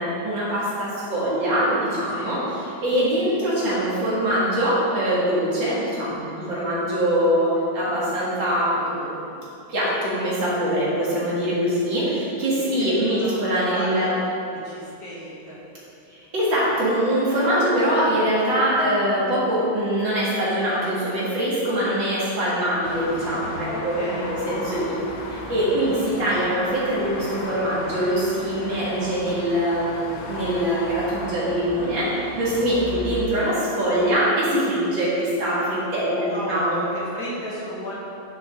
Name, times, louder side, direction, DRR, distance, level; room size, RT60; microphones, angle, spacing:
voice 1, 0.0-9.3 9.7-14.2 16.1-25.0 25.2-36.8, equal, 70° right, -8 dB, 2.9 m, -23 dB
voice 2, 12.6-14.1 14.5-15.6 23.7-24.9 32.8-33.1 36.3-37.9, equal, 45° left, -7 dB, 2.3 m, -35 dB
sound 1, 22.8-33.3, left 2 dB, 80° left, 1.7 m, -35 dB
9.6 x 7.2 x 3.7 m, 2.7 s
omnidirectional pair, 2.1 m